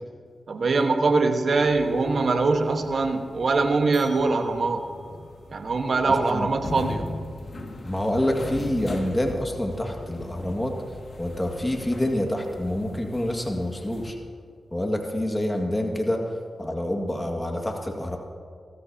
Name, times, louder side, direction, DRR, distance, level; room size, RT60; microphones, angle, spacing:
voice 1, 0.5-4.9 5.5-7.1, right 3 dB, 60° right, 6 dB, 1.3 m, -23 dB
sound 1, 1.6-14.1, left 2 dB, 55° left, 2.1 m, -39 dB
voice 2, 6.1-6.5 7.9-10.7 11.2-14.2 14.7-16.2 16.6-18.2, left 1 dB, 15° left, 2 dB, 1.9 m, -27 dB
25.5 x 13.5 x 2.8 m, 2.1 s
supercardioid pair, 45°, 0 cm